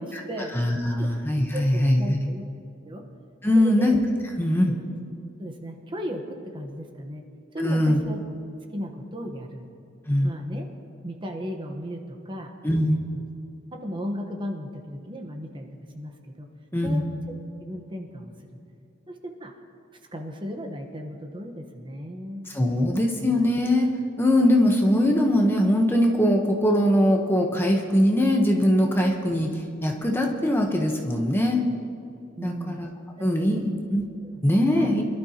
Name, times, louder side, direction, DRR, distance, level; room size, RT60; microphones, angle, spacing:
voice 1, 0.0-0.6 0.8-1.1 1.5-2.4 2.8-3.0 3.5-4.0 4.6-5.0 5.4-7.2 7.5-8.2 8.7-9.7 10.2-10.7 11.0-12.5 13.1-13.3 13.7-15.7 15.9-16.1 16.4-16.5 16.8-17.0 17.6-18.6 19.1-19.5 20.1-23.0 32.4-32.8 33.4-33.8 34.3-34.5 34.7-35.0, equal, 25° right, 3 dB, 1.1 m, -35 dB
voice 2, 0.5-2.2 3.4-4.0 4.4-4.8 7.6-8.0 10.1-10.3 12.6-13.0 16.7-17.0 22.5-23.9 24.2-31.6 32.4-32.9 33.2-34.0 34.4-35.1, left 1 dB, 10° left, 1 dB, 1.0 m, -21 dB
24.5 x 12.0 x 2.9 m, 2.6 s
head